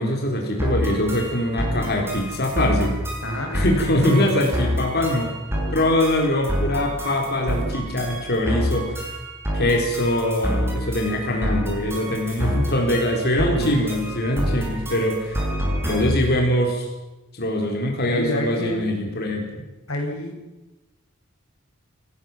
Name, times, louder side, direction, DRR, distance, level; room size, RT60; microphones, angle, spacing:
voice 1, 0.0-2.9 3.5-5.3 5.7-9.1 9.5-15.5 15.8-16.9 17.3-19.7, left 1 dB, 50° left, 1 dB, 3.9 m, -23 dB
sound 1, 0.6-16.3, equal, 10° right, 6.8 m, -27 dB
voice 2, 3.2-3.7 13.5-13.9 18.1-18.8 19.9-20.4, left 1 dB, 65° left, 2 dB, 6.4 m, -28 dB
28.5 x 15.5 x 7.3 m, 1.0 s
head